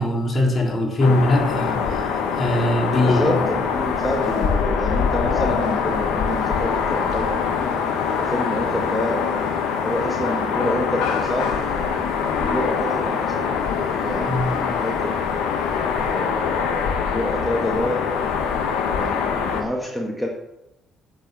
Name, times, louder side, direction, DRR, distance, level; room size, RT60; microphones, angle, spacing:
voice 1, 0.0-1.8 2.3-3.3 14.3-14.5, left 1 dB, 35° left, -1 dB, 3.6 m, -20 dB
sound 1, 1.0-19.6, left 6 dB, 75° left, 1.3 m, -23 dB
voice 2, 3.0-7.4 8.2-9.4 9.8-11.5 12.3-13.4 14.0-15.2 16.1-18.1 19.0-20.3, left 1 dB, 10° left, 0 dB, 1.8 m, -28 dB
8.5 x 7.6 x 6.2 m, 0.89 s
hypercardioid pair, 50°, 0 cm